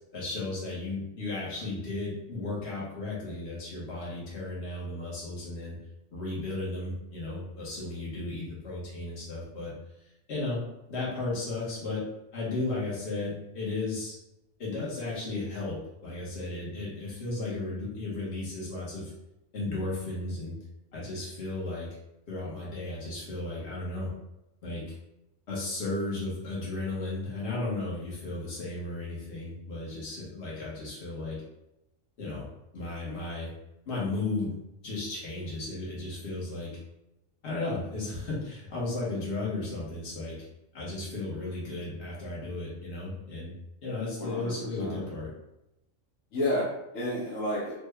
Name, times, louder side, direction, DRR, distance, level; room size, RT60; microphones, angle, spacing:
voice 1, 0.1-5.8 6.1-9.7 10.3-10.6 10.9-12.0 12.3-14.1 14.6-19.1 19.5-20.5 20.9-21.9 22.3-24.1 24.6-24.9 25.5-31.4 32.2-32.5 32.7-33.5 33.9-34.5 34.8-36.7 37.4-40.4 40.7-43.5 43.8-45.3, left 2 dB, 60° left, -6 dB, 1.3 m, -34 dB
voice 2, 44.2-45.0 46.3-47.7, left 1 dB, 90° left, -5 dB, 1.1 m, -31 dB
3.3 x 2.2 x 3.3 m, 0.90 s
omnidirectional pair, 1.3 m